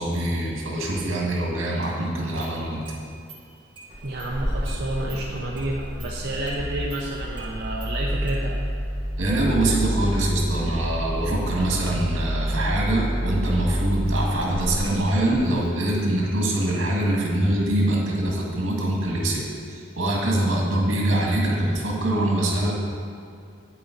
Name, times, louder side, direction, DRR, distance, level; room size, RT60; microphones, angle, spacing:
voice 1, 0.0-2.9 9.2-22.8, right 1 dB, 80° right, -3 dB, 1.9 m, -24 dB
Engine starting, 1.8-1.9 2.3-3.0 3.3-3.4 3.8-15.7, equal, 25° right, 1.6 m, -29 dB
voice 2, 4.0-8.6, right 1 dB, 55° right, -3 dB, 0.7 m, -30 dB
8.9 x 8.5 x 4.0 m, 2.3 s
head